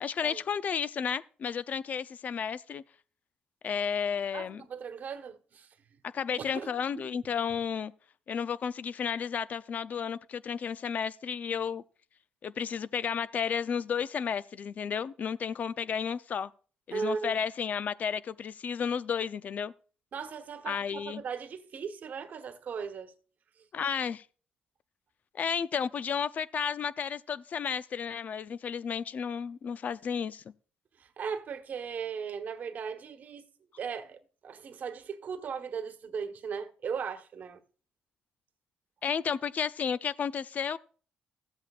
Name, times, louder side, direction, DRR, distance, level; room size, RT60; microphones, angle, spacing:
voice 1, 0.0-2.8 3.6-4.6 6.1-7.9 8.3-11.8 12.4-16.5 16.9-19.7 20.7-21.2 23.7-24.2 25.3-30.4 39.0-40.8, left 7 dB, 50° left, 0.5 m, -32 dB
voice 2, 4.3-6.0 6.4-7.2 16.9-17.3 20.1-23.1 31.0-33.5 33.8-37.6, right 6 dB, 55° right, 1.2 m, -38 dB
14.5 x 8.1 x 2.4 m
cardioid pair, 95°, 3 cm